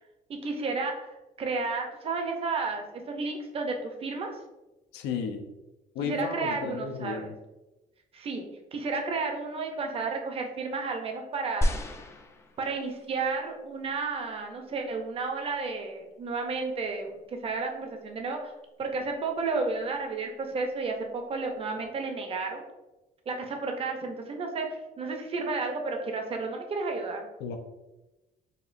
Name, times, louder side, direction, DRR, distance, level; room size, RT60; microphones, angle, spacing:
voice 1, 0.3-0.9 1.4-4.3 6.0-7.3 8.1-8.4 8.7-11.7 12.6-18.5 18.8-22.7 23.3-27.3, right 3 dB, 35° right, 3 dB, 0.6 m, -32 dB
voice 2, 4.9-5.4 5.9-7.4 27.4-27.6, left 5 dB, 80° left, 6 dB, 0.5 m, -33 dB
sound 1, 11.6-13.1 13.9-14.0, equal, 15° left, 0.3 m, -31 dB
4.2 x 2.4 x 2.5 m, 1.0 s
cardioid pair, 110°, 17 cm